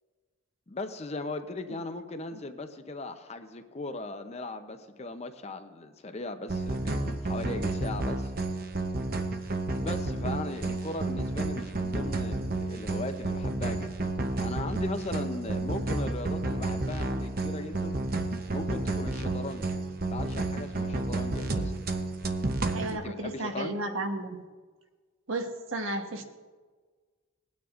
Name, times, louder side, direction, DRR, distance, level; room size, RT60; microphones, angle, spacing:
voice 1, 0.7-8.3 9.8-14.1 14.4-18.0 18.5-19.6 20.1-21.8 22.9-23.7, left 2 dB, 30° left, 8 dB, 0.6 m, -38 dB
sound 1, 6.5-23.0, right 2 dB, 45° right, 0.7 m, -31 dB
voice 2, 22.7-24.4 25.3-26.3, right 2 dB, 75° right, 5 dB, 1.1 m, -33 dB
20.5 x 9.4 x 2.5 m, 1.4 s
head